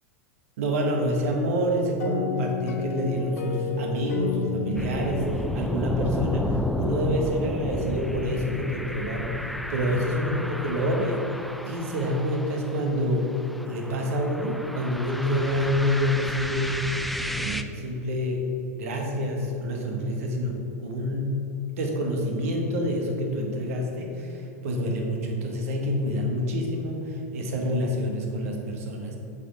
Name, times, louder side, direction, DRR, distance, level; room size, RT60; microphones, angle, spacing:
voice 1, 0.6-11.3 11.6-13.3 13.6-16.9 17.4-18.4 18.8-21.4 21.8-29.2, equal, 70° right, 1 dB, 1.3 m, -27 dB
sound 1, 2.0-6.6, left 6 dB, 85° left, 0.6 m, -32 dB
sound 2, 4.8-17.6, equal, ahead, 0.3 m, -33 dB
7.1 x 4.6 x 4.8 m, 2.9 s
hypercardioid pair, 100°, 8 cm